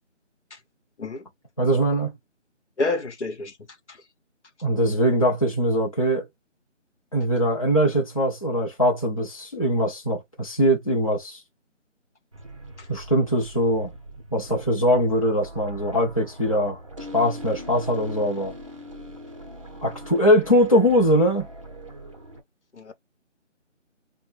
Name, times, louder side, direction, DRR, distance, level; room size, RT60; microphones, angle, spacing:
voice 1, 1.6-2.1 4.6-6.3 7.1-11.4 12.9-13.9 14.3-16.8 17.1-18.5 19.8-21.5, equal, 30° left, 0.6 m, -21 dB
voice 2, 2.8-3.5 22.7-22.9, left 2 dB, 65° left, 0.9 m, -28 dB
sound 1, 12.3-22.4, equal, 25° right, 0.7 m, -41 dB
3.5 x 2.1 x 3.1 m
figure-of-eight pair, 165°, 37 cm